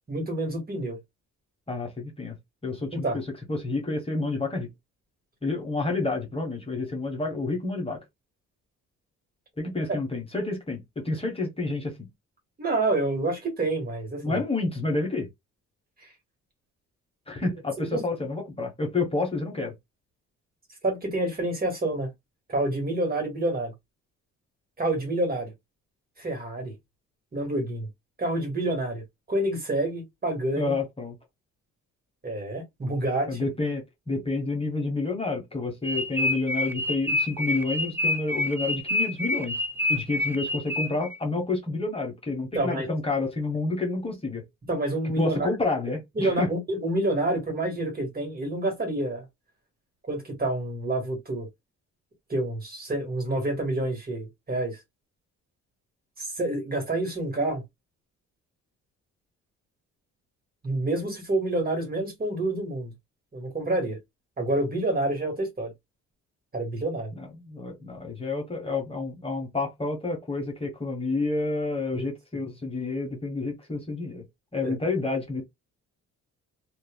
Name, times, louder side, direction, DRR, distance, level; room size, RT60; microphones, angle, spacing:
voice 1, 0.1-1.0 2.9-3.2 12.6-14.4 17.8-18.0 20.8-22.1 22.5-23.7 24.8-25.5 26.2-26.7 27.3-27.9 28.2-29.0 29.3-30.7 32.2-33.4 42.5-42.9 44.7-45.5 46.1-49.2 50.1-51.5 52.3-54.8 56.2-57.6 60.6-62.9 63.3-64.0 64.4-65.7 66.5-67.1 71.9-72.1 74.6-74.7, right 2 dB, 30° right, 1.6 m, -28 dB
voice 2, 1.7-2.4 2.6-4.7 5.4-8.0 9.6-12.1 14.2-15.3 17.3-19.7 30.6-31.1 33.3-39.6 39.9-44.4 45.2-46.5 67.1-74.2 74.5-75.4, left 3 dB, 20° left, 1.1 m, -29 dB
sound 1, 35.8-41.2, left 1 dB, 5° right, 0.5 m, -27 dB
3.1 x 2.5 x 2.2 m
cardioid pair, 90°, 30 cm